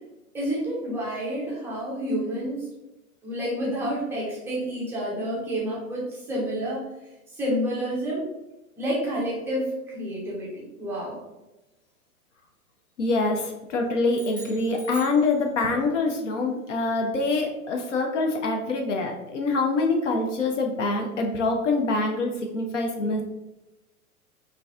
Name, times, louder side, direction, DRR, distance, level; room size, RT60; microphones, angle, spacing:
voice 1, 0.3-2.7 3.2-6.8 7.3-8.2 8.8-11.2, equal, 5° right, -5 dB, 0.5 m, -29 dB
voice 2, 13.0-23.2, left 3 dB, 55° left, 2 dB, 0.6 m, -25 dB
sound 1, 14.1-15.9, right 1 dB, 80° left, 1.5 m, -45 dB
3.8 x 2.7 x 2.4 m, 1.0 s
figure-of-eight pair, 100°, 45 cm